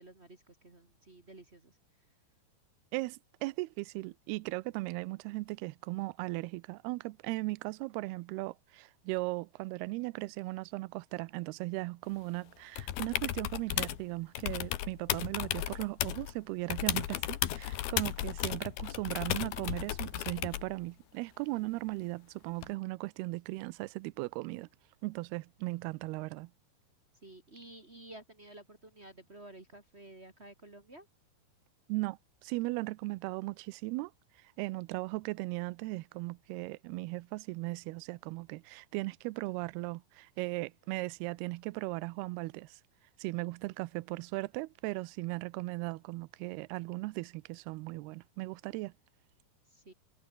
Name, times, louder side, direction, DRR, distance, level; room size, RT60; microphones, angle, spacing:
voice 1, 0.0-1.8 27.2-31.1 49.7-49.9, right 1 dB, 25° right, 1.5 m, -52 dB
voice 2, 2.9-24.7 25.0-26.5 31.9-34.1 34.6-42.8 43.2-48.9, right 22 dB, 85° right, 2.6 m, -37 dB
sound 1, 12.8-14.0 14.4-16.3 16.7-20.7 22.6-22.7, left 13 dB, 75° left, 3.3 m, -35 dB
omnidirectional pair, 4.6 m